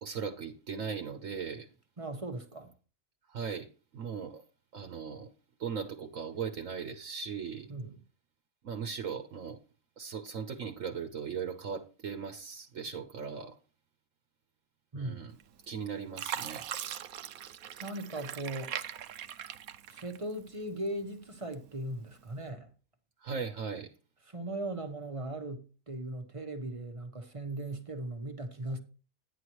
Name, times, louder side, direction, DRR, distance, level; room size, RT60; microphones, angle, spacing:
voice 1, 0.0-1.7 3.3-3.7 3.9-4.4 4.7-5.3 5.6-7.7 8.6-9.6 10.0-13.5 14.9-15.3 15.7-16.6 23.2-23.9, right 6 dB, 65° right, 1.3 m, -38 dB
voice 2, 2.0-2.7 7.7-8.0 14.9-15.3 17.8-18.8 19.9-22.7 24.3-28.8, right 1 dB, 25° right, 1.1 m, -38 dB
Fill (with liquid), 15.4-15.8 16.1-20.5 21.0-21.8 22.3-22.5, right 10 dB, 80° right, 1.1 m, -40 dB
10.0 x 9.8 x 3.1 m
omnidirectional pair, 1.5 m